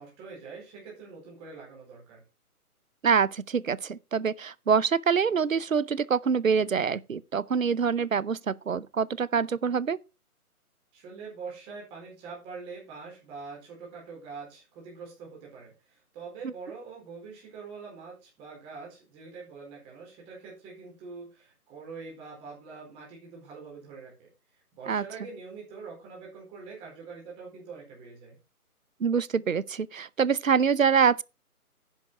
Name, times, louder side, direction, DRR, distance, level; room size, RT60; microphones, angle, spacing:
voice 1, 0.0-2.2 10.9-24.3 24.7-28.4, right 4 dB, 10° right, 4.5 m, -44 dB
voice 2, 3.0-10.0 24.9-25.0 29.0-31.2, right 6 dB, 60° right, 0.8 m, -25 dB
10.5 x 9.3 x 4.6 m
figure-of-eight pair, 150°, 45 cm